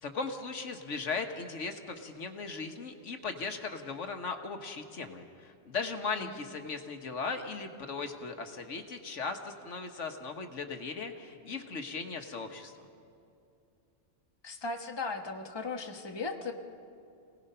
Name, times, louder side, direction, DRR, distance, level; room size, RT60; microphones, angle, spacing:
voice 1, 0.0-12.7, left 4 dB, 70° left, 5 dB, 1.5 m, -38 dB
voice 2, 6.0-6.4 14.4-16.5, left 3 dB, 20° left, 3 dB, 1.2 m, -37 dB
27.5 x 18.0 x 5.5 m, 2.5 s
omnidirectional pair, 1.3 m